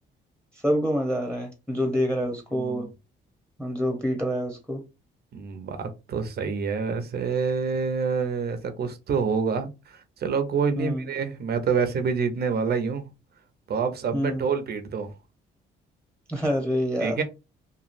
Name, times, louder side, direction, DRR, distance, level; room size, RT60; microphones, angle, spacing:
voice 1, 0.6-2.9 3.6-4.8 10.8-11.1 14.1-14.4 16.3-17.2, equal, 5° left, 0.9 m, -26 dB
voice 2, 2.5-2.9 5.3-13.1 13.7-15.1 17.0-17.2, right 5 dB, 55° right, 0.6 m, -27 dB
3.0 x 2.4 x 2.5 m
cardioid pair, 90°, 20 cm